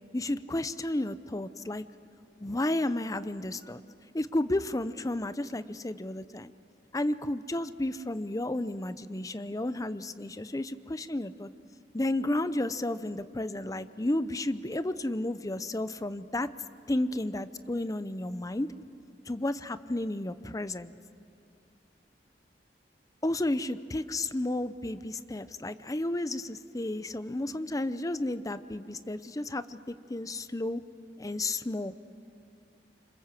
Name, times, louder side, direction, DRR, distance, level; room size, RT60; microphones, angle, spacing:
voice 1, 0.1-1.8 2.4-3.8 4.1-6.5 6.9-11.5 11.9-16.5 16.9-18.7 19.3-20.9 23.2-30.8 31.2-31.9, left 1 dB, 20° left, 13 dB, 0.6 m, -32 dB
27.5 x 26.0 x 7.5 m, 2.4 s
head